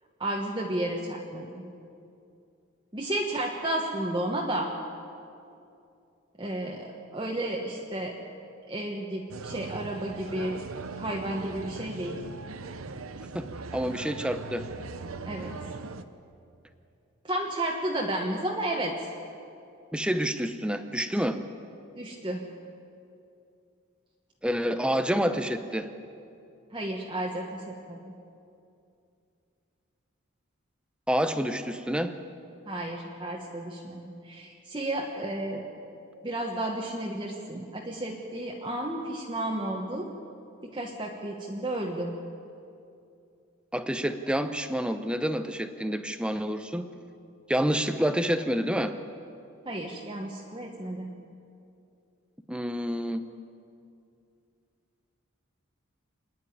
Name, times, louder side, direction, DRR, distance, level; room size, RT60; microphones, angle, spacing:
voice 1, 0.2-1.6 2.9-4.7 6.4-8.1 8.7-10.6 10.9-12.2 15.3-15.5 17.2-18.9 22.0-22.4 26.7-28.0 32.7-35.6 36.2-40.1 40.6-42.1 49.6-51.1, right 1 dB, 20° right, -1 dB, 1.3 m, -32 dB
sound 1, 9.3-16.0, right 3 dB, 90° right, 0.9 m, -39 dB
voice 2, 13.7-14.7 19.9-21.4 24.4-25.9 31.1-32.1 43.7-46.9 47.5-49.0 52.5-53.2, equal, 5° right, 9 dB, 0.7 m, -28 dB
26.0 x 10.0 x 10.0 m, 2.6 s
head